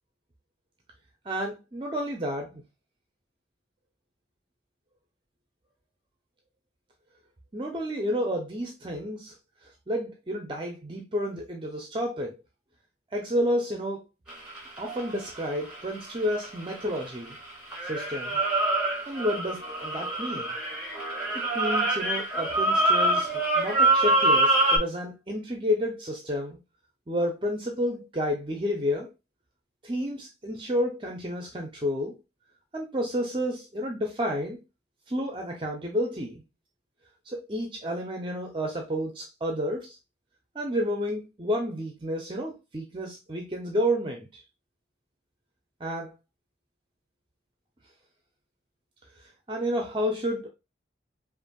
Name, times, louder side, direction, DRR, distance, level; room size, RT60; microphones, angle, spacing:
voice 1, 1.2-2.6 7.5-9.4 9.6-12.4 13.1-14.0 14.8-17.4 17.8-18.4 19.1-20.5 21.5-26.6 27.1-29.1 29.8-32.2 32.7-34.6 35.1-36.4 37.3-40.0 40.5-44.4 45.8-46.1 49.2-50.5, equal, 25° right, 0.5 m, -30 dB
sound 1, 14.3-17.4 17.7-24.8, right 2 dB, 5° right, 1.6 m, -25 dB
5.3 x 2.5 x 2.2 m
head